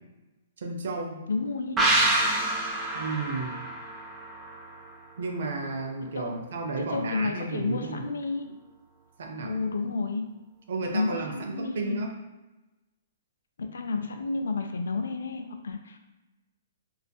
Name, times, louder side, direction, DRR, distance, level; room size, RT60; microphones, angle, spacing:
voice 1, 0.6-1.2 2.9-3.7 5.2-8.1 9.2-9.5 10.7-12.1, right 3 dB, 70° right, 2 dB, 0.5 m, -33 dB
voice 2, 1.3-1.8 6.0-6.3 6.8-8.6 9.4-10.3 10.9-12.0 13.6-16.0, left 3 dB, 85° left, 6 dB, 0.3 m, -31 dB
sound 1, 1.8-5.2 5.5-5.6, right 1 dB, 10° right, 0.3 m, -27 dB
2.6 x 2.3 x 2.2 m, 1.1 s
hypercardioid pair, 145°, 0 cm